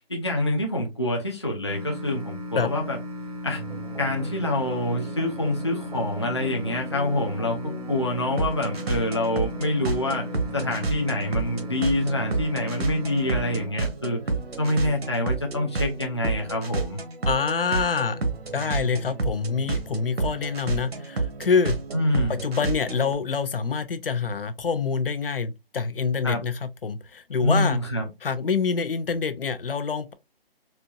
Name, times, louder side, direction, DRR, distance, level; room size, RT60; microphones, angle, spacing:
voice 1, 0.1-3.0 3.4-3.6 4.0-7.6 7.9-14.2 14.6-17.0 21.9-22.4 26.2-26.4 27.4-28.1, left 1 dB, 30° left, 0.5 m, -26 dB
sound 1, 1.7-13.7, left 1 dB, 40° right, 0.6 m, -36 dB
sound 2, 3.5-23.1, right 3 dB, 80° right, 1.1 m, -31 dB
voice 2, 17.3-18.2 18.5-21.8 22.3-27.8 28.2-30.1, left 5 dB, 65° left, 0.7 m, -26 dB
4.4 x 2.6 x 2.2 m
hypercardioid pair, 180°, 30 cm